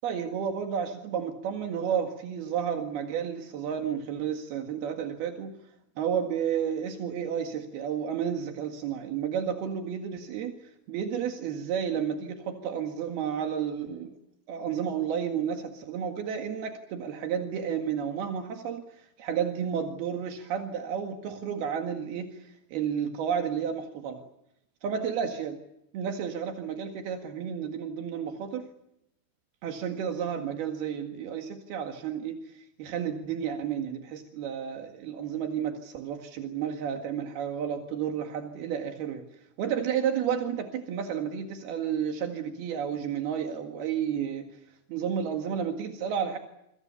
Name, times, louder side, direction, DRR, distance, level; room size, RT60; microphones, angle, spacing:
voice 1, 0.0-5.5 6.0-10.6 10.9-14.1 14.5-18.8 19.2-22.3 22.7-24.2 24.8-25.6 25.9-28.7 29.6-39.3 39.6-44.4 44.9-46.4, right 8 dB, 80° right, 4 dB, 3.9 m, -31 dB
26.5 x 24.5 x 6.9 m, 0.81 s
omnidirectional pair, 4.4 m